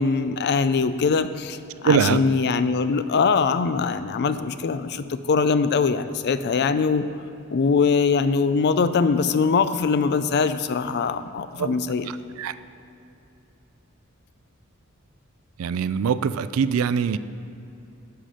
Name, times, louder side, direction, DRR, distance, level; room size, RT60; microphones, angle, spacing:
voice 1, 0.0-7.1 7.5-12.1, left 5 dB, 50° left, 12 dB, 0.4 m, -22 dB
voice 2, 1.8-2.2 11.6-11.8 12.4-12.5 15.6-17.2, right 6 dB, 75° right, 15 dB, 0.3 m, -22 dB
11.5 x 5.7 x 4.9 m, 2.8 s
head